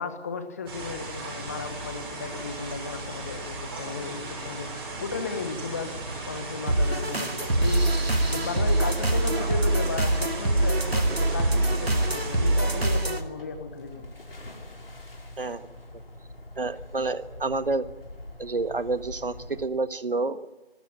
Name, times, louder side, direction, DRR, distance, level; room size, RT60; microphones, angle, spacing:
voice 1, 0.0-5.9 6.3-7.9 8.3-14.1, left 5 dB, 15° left, 9 dB, 1.2 m, -35 dB
sound 1, 0.7-13.0, right 2 dB, 25° right, 7.7 m, -37 dB
sound 2, 6.7-13.2, right 1 dB, 85° right, 2.3 m, -24 dB
sound 3, 8.5-19.7, left 1 dB, 65° left, 5.5 m, -44 dB
voice 2, 15.4-15.7 16.6-17.9 18.4-20.6, right 3 dB, 65° right, 12 dB, 1.5 m, -29 dB
25.0 x 14.5 x 9.0 m, 1.1 s
figure-of-eight pair, 160°, 30 cm